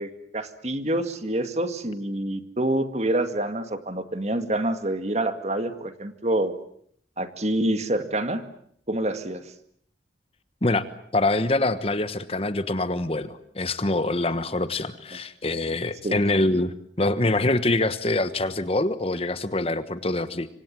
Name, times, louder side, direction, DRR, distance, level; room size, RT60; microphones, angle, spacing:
voice 1, 0.0-6.5 7.2-8.4 8.9-9.5 16.0-16.2, right 1 dB, 40° right, 9 dB, 2.1 m, -27 dB
voice 2, 11.1-20.5, left 2 dB, 35° left, 12 dB, 1.2 m, -25 dB
26.0 x 26.0 x 7.6 m, 0.64 s
head